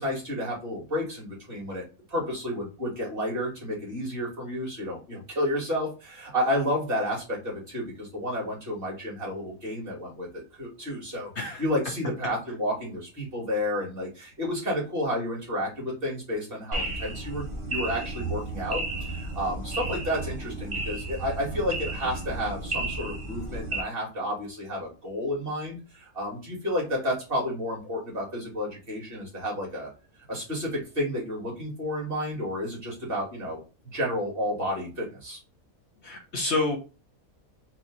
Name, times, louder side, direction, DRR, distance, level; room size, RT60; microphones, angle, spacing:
voice 1, 0.0-29.9 30.3-33.6 33.9-35.4, left 1 dB, 40° right, -3 dB, 2.4 m, -31 dB
sound 1, 16.7-23.8, right 2 dB, 25° right, 0.9 m, -33 dB
voice 2, 36.0-36.8, left 2 dB, 55° left, 1 dB, 1.0 m, -28 dB
4.2 x 3.0 x 3.8 m, 0.32 s
omnidirectional pair, 1.5 m